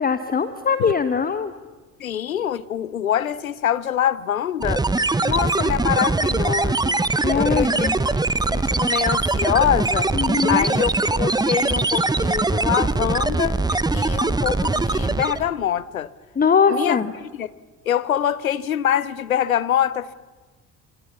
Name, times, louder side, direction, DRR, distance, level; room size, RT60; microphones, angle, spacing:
voice 1, 0.0-1.5 7.2-7.9 10.1-10.7 16.4-17.1, left 6 dB, 20° left, 1.1 m, -21 dB
voice 2, 2.0-4.8 5.2-7.0 7.3-10.1 10.5-13.6 13.9-16.1 16.7-17.5 17.8-20.1, left 10 dB, 80° left, 0.8 m, -24 dB
sound 1, 4.6-15.5, right 3 dB, 10° right, 1.1 m, -22 dB
29.0 x 26.0 x 7.2 m
figure-of-eight pair, 55°, 41 cm